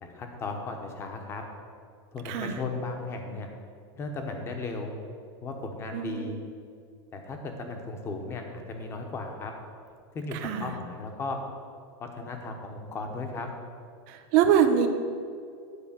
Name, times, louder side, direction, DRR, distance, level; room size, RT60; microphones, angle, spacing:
voice 1, 0.0-1.4 2.1-3.5 4.0-4.9 5.4-6.4 7.1-9.5 10.1-11.4 12.0-13.5, left 3 dB, 20° left, 4 dB, 1.0 m, -36 dB
voice 2, 2.2-2.6 5.9-6.4 10.3-10.7 14.1-14.9, right 8 dB, 45° right, 6 dB, 0.9 m, -24 dB
9.8 x 4.5 x 7.4 m, 2.3 s
supercardioid pair, 170°, 13 cm